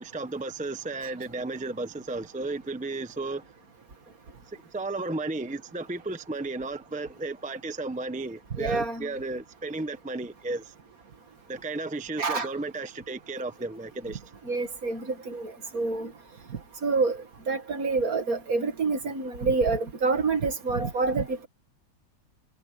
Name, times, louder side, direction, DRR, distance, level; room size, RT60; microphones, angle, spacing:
voice 1, 0.0-3.5 4.5-10.7 11.5-14.2, right 2 dB, 5° right, 0.8 m, -34 dB
voice 2, 8.6-9.1 12.2-12.5 14.5-16.1 16.8-17.2 17.5-21.5, right 4 dB, 60° right, 2.4 m, -27 dB
omnidirectional pair, 1.8 m